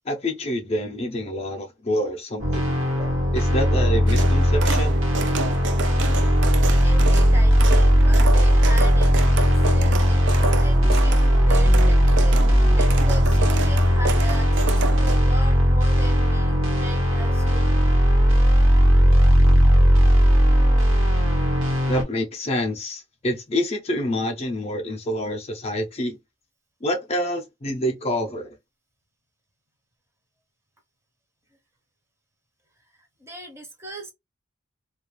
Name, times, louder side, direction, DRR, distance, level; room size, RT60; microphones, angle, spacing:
voice 1, 0.1-5.0 21.9-26.2 26.8-28.5, equal, 30° left, 0.5 m, -27 dB
sound 1, 2.4-22.0, equal, 80° right, 1.1 m, -17 dB
sound 2, 4.1-15.2, right 3 dB, 60° right, 0.4 m, -30 dB
voice 2, 6.4-10.3 10.6-17.7 21.0-21.4 33.2-34.1, right 1 dB, 15° right, 0.6 m, -39 dB
2.3 x 2.3 x 3.0 m
head